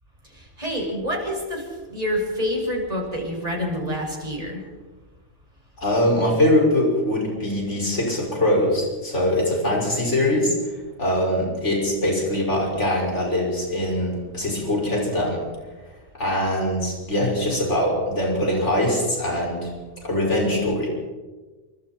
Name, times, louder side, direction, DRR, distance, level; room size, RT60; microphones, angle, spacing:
voice 1, 0.3-4.6, equal, 30° right, -1 dB, 6.6 m, -27 dB
voice 2, 5.8-10.5 11.0-15.4 16.2-19.7 20.0-20.9, left 1 dB, 75° left, -2 dB, 6.6 m, -22 dB
27.5 x 25.0 x 4.6 m, 1.3 s
omnidirectional pair, 1.2 m